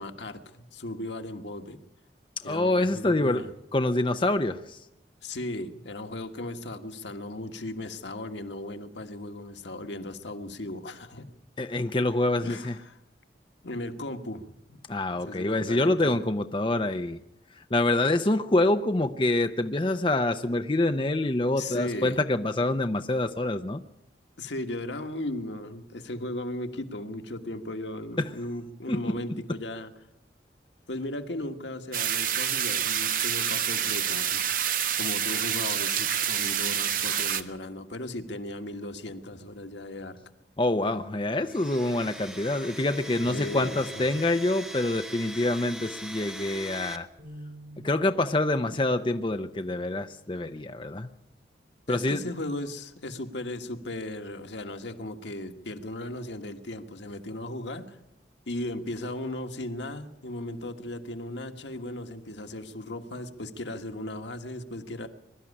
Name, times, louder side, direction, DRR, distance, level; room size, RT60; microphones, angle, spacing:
voice 1, 0.0-1.8 2.4-3.5 5.2-11.3 12.4-13.0 13.6-14.8 15.2-16.2 21.6-22.2 24.4-29.9 30.9-34.4 35.0-40.2 43.2-44.1 51.9-58.0 58.5-65.1, left 1 dB, 90° left, 6 dB, 1.5 m, -36 dB
voice 2, 2.4-3.4 3.7-4.8 11.6-12.7 14.9-17.2 17.5-23.8 28.2-28.3 28.9-29.1 40.6-47.1 47.8-51.1 51.9-52.2, left 2 dB, 30° left, 8 dB, 0.6 m, -26 dB
sound 1, 31.9-37.4, right 9 dB, 50° right, 1.0 m, -27 dB
Domestic sounds home sounds, 41.4-47.0, right 1 dB, 5° right, 0.9 m, -41 dB
sound 2, 47.2-51.4 51.9-52.2 53.0-53.4, right 1 dB, 75° right, 7.3 m, -50 dB
22.0 x 12.5 x 9.8 m, 0.88 s
head